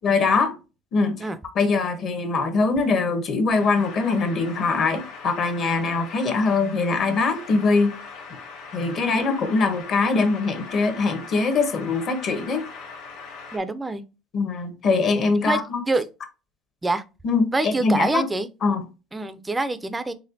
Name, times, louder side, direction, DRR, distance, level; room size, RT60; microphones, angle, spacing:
voice 1, 0.0-0.6 0.9-1.2 1.5-7.9 8.7-12.6 14.3-15.8 17.2-18.3 18.6-18.8, left 4 dB, 40° left, 0.9 m, -22 dB
sound 1, 3.5-13.6, left 4 dB, 90° left, 1.2 m, -40 dB
voice 2, 13.5-14.0 15.3-15.6 15.9-16.1 16.8-17.0 17.5-18.5 19.1-20.1, right 2 dB, 10° right, 0.4 m, -25 dB
4.1 x 3.6 x 2.7 m
cardioid pair, 140°, 0 cm